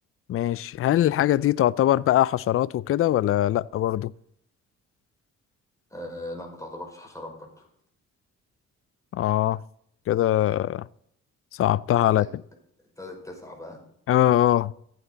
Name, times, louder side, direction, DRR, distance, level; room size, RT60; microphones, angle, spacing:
voice 1, 0.3-4.1 9.1-9.6 10.1-10.9 11.6-12.3 14.1-14.7, left 13 dB, 50° left, 0.4 m, -22 dB
voice 2, 5.9-7.7 12.1-12.3 13.0-13.8, left 1 dB, 10° left, 5.5 m, -39 dB
14.5 x 9.1 x 4.1 m
cardioid pair, 90°, 30 cm